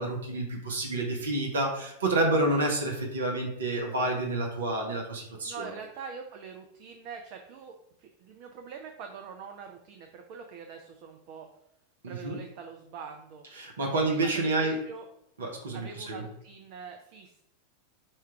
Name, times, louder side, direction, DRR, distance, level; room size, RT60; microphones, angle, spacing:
voice 1, 0.0-5.7 12.0-12.4 13.5-14.8 15.4-16.2, right 2 dB, 65° right, 1 dB, 0.8 m, -29 dB
voice 2, 5.4-11.5 12.1-13.4 13.8-15.1 15.7-17.4, right 6 dB, 45° right, 4 dB, 0.4 m, -44 dB
4.4 x 2.3 x 4.3 m, 0.78 s
figure-of-eight pair, 90°, 0 cm